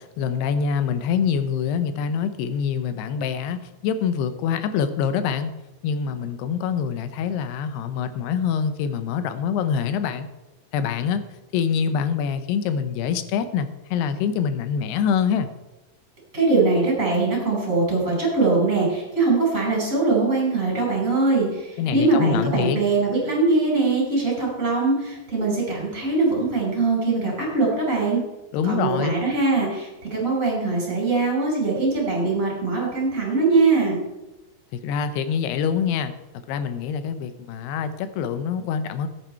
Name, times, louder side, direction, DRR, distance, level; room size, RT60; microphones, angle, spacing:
voice 1, 0.2-3.6 3.8-5.5 5.8-10.3 10.7-11.2 11.5-15.5 21.8-22.8 28.5-29.2 34.7-36.1 36.5-39.1, left 7 dB, 85° left, 11 dB, 2.9 m, -25 dB
voice 2, 16.3-21.5 21.9-28.2 28.6-34.0, right 3 dB, 20° right, -3 dB, 5.5 m, -22 dB
13.5 x 10.0 x 4.5 m, 1.0 s
omnidirectional pair, 4.6 m